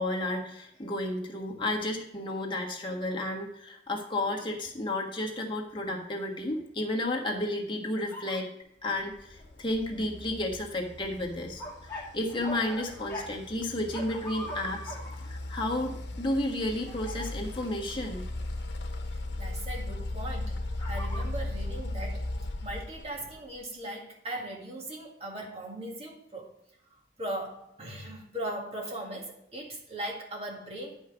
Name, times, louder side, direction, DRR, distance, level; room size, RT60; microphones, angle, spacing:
voice 1, 0.0-8.5 8.8-11.6 11.9-18.2, left 1 dB, 30° left, 0 dB, 1.5 m, -32 dB
sound 1, 7.9-8.4 11.6-13.3 13.9-15.2 16.9-17.3 20.8-21.3, left 1 dB, 15° left, 1.6 m, -40 dB
sound 2, 9.1-23.6, left 1 dB, 85° left, 1.0 m, -37 dB
voice 2, 19.4-22.3 22.6-26.5 27.2-31.0, right 1 dB, 35° right, -1 dB, 2.0 m, -39 dB
10.0 x 5.4 x 4.9 m, 0.77 s
head